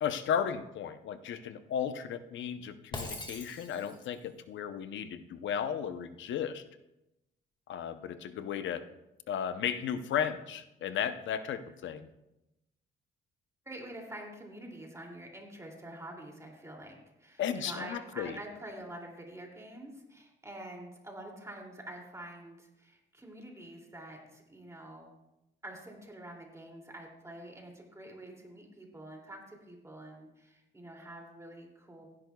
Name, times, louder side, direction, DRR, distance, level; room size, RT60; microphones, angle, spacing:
voice 1, 0.0-6.6 7.7-8.8 9.3-12.1 17.4-18.4, left 8 dB, 70° left, 11 dB, 0.8 m, -35 dB
Shatter, 2.9-4.1, left 2 dB, 25° left, 1.9 m, -41 dB
voice 2, 13.6-25.1 25.6-32.0, right 1 dB, 15° right, 0 dB, 2.7 m, -47 dB
15.5 x 11.0 x 2.3 m, 0.91 s
cardioid pair, 90°, 20 cm